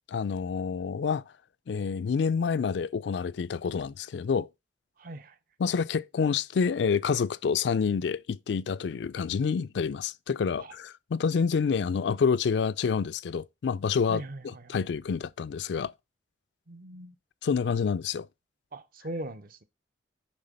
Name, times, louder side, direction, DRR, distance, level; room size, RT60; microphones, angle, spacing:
voice 1, 0.1-1.2 1.7-4.5 5.6-14.2 14.7-15.9 17.4-18.3, left 6 dB, 70° left, 0.4 m, -28 dB
voice 2, 5.0-5.4 10.6-10.7 14.1-14.8 16.7-17.1 18.7-19.6, right 1 dB, 50° right, 0.8 m, -40 dB
9.7 x 3.7 x 5.2 m
head